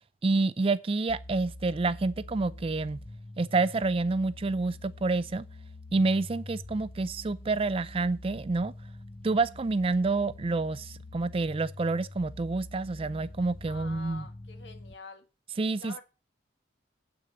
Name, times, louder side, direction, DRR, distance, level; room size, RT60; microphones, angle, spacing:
voice 1, 0.2-3.0 3.4-5.5 5.9-8.7 9.2-14.2 15.6-15.9, right 3 dB, 30° right, 0.4 m, -28 dB
sound 1, 1.1-14.9, left 2 dB, 25° left, 0.5 m, -46 dB
voice 2, 13.7-15.3 15.8-16.0, left 4 dB, 60° left, 1.6 m, -46 dB
8.2 x 6.5 x 6.2 m
head